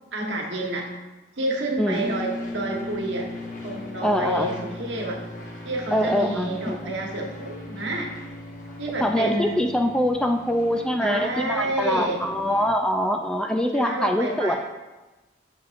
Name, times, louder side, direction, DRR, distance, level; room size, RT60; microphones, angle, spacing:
voice 1, 0.1-0.9 1.3-3.3 3.6-5.2 5.6-8.1 8.8-9.6 11.0-12.3 13.7-14.6, right 2 dB, 80° right, 0 dB, 1.2 m, -29 dB
sound 1, 1.9-12.7, left 2 dB, 45° left, 1.0 m, -38 dB
voice 2, 4.0-4.5 5.9-6.9 9.0-14.6, equal, 5° left, 3 dB, 0.3 m, -24 dB
7.3 x 7.2 x 2.5 m, 1.1 s
head